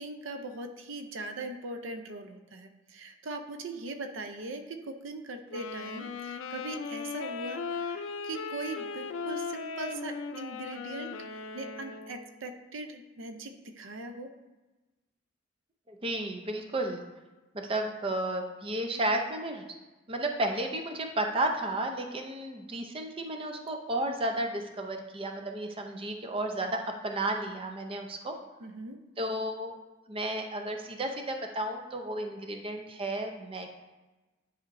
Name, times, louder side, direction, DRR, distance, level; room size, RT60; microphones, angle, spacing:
voice 1, 0.0-14.3 28.6-29.0, right 2 dB, 85° right, 6 dB, 0.6 m, -40 dB
Wind instrument woodwind instrument, 5.5-12.3, left 5 dB, 80° left, 0.4 m, -38 dB
voice 2, 15.9-17.0 17.5-19.6 20.1-28.3 29.2-29.7 30.1-33.7, right 1 dB, 30° right, 4 dB, 0.6 m, -33 dB
10.0 x 4.3 x 2.6 m, 1.1 s
head